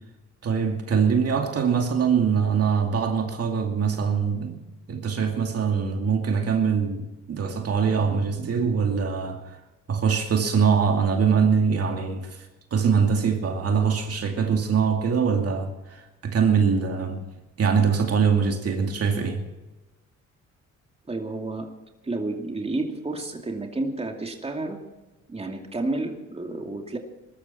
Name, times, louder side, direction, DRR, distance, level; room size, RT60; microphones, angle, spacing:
voice 1, 0.4-4.6 4.9-9.6 9.9-17.2 17.6-19.5, right 6 dB, 50° right, 2.4 m, -23 dB
voice 2, 21.1-21.7 22.0-24.8 25.3-27.0, right 2 dB, 20° right, 2.6 m, -30 dB
21.0 x 13.5 x 4.3 m
cardioid pair, 90°, 30 cm